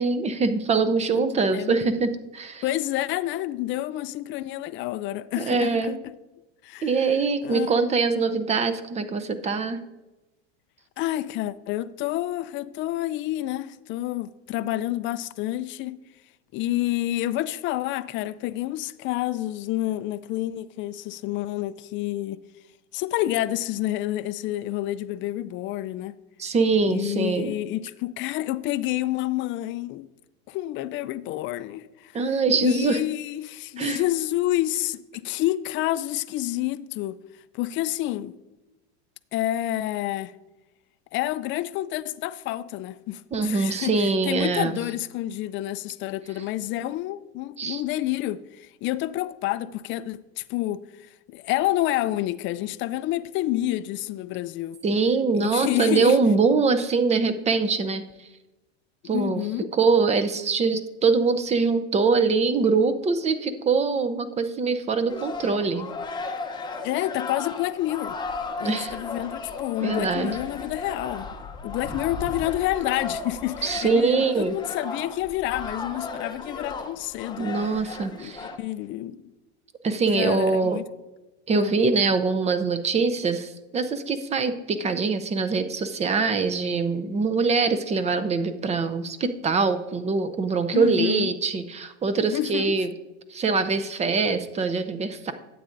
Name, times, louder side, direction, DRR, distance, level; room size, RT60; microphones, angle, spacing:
voice 1, 0.0-2.6 5.4-6.0 6.8-9.8 26.4-27.5 32.1-33.0 33.8-34.0 43.3-44.8 47.6-47.8 54.8-58.0 59.0-59.4 59.7-65.9 68.6-69.0 69.8-70.4 73.6-74.6 77.4-78.4 79.8-80.8 81.5-92.9 93.3-95.3, right 4 dB, 20° right, 0.6 m, -23 dB
voice 2, 2.6-6.1 6.6-6.9 7.4-7.7 11.0-16.0 16.5-22.4 22.9-26.2 26.8-30.1 30.5-32.2 32.6-37.2 37.5-38.3 39.3-40.3 41.1-54.8 55.3-56.2 59.0-59.7 66.8-68.2 68.6-71.3 71.6-77.5 77.8-79.3 80.1-80.8 81.5-81.7 90.7-91.3 92.3-92.7, left 15 dB, 40° left, 0.4 m, -29 dB
sound 1, 65.1-78.6, left 3 dB, 15° left, 0.8 m, -35 dB
12.0 x 8.6 x 2.6 m
supercardioid pair, 115°, 33 cm